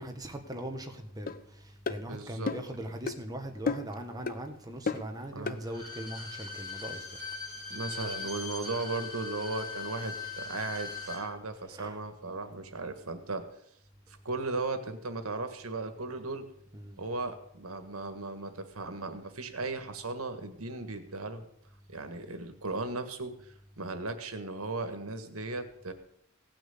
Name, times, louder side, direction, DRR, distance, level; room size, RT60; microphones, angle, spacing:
voice 1, 0.0-7.2 11.7-12.0 16.7-17.0, right 1 dB, 20° right, 4 dB, 1.6 m, -40 dB
sound 1, 1.3-1.4 1.9-2.0 2.5-2.7 3.1-3.2 3.7-4.0 4.3-4.4 4.9-5.1 5.5-5.6, left 4 dB, 45° left, 0.6 m, -32 dB
voice 2, 2.1-2.5 5.3-5.6 7.7-13.4 14.1-16.4 17.0-21.4 21.9-25.9, right 3 dB, 85° right, 8 dB, 1.7 m, -36 dB
Bowed string instrument, 5.6-11.2 11.6-11.7, left 4 dB, 20° left, 3.9 m, -40 dB
17.0 x 6.2 x 8.6 m, 0.73 s
head